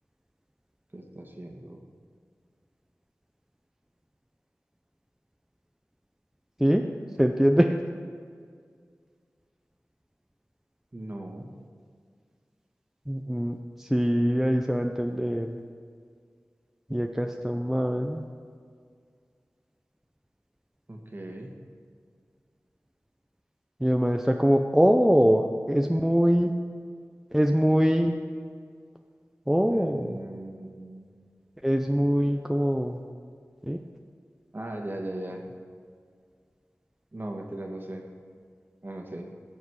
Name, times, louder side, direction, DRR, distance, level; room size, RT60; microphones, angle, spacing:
voice 1, 0.9-1.8 10.9-11.5 20.9-21.6 29.7-31.1 34.5-35.4 37.1-38.0 38.8-39.3, right 1 dB, 40° right, 2 dB, 1.7 m, -38 dB
voice 2, 7.2-7.8 13.1-15.5 16.9-18.2 23.8-26.5 27.3-28.2 29.5-30.2 31.6-33.0 33.6-33.8, equal, 5° right, 3 dB, 0.6 m, -23 dB
18.0 x 7.3 x 4.8 m, 2.1 s
wide cardioid pair, 65°, 6 cm